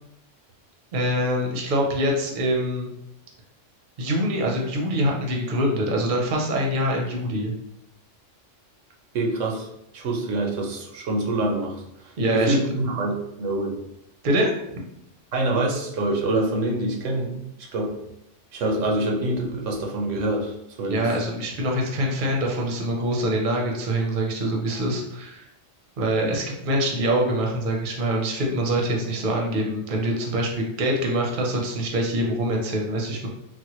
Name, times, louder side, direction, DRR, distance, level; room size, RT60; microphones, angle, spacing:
voice 1, 0.9-2.9 4.0-7.5 12.2-12.8 14.2-14.5 20.9-25.4 26.0-33.3, right 1 dB, 50° right, 0 dB, 0.7 m, -24 dB
voice 2, 9.1-9.7 9.9-13.7 15.3-17.9 18.5-21.1, right 2 dB, 80° right, 0 dB, 1.0 m, -26 dB
4.1 x 2.1 x 2.9 m, 0.81 s
omnidirectional pair, 1.3 m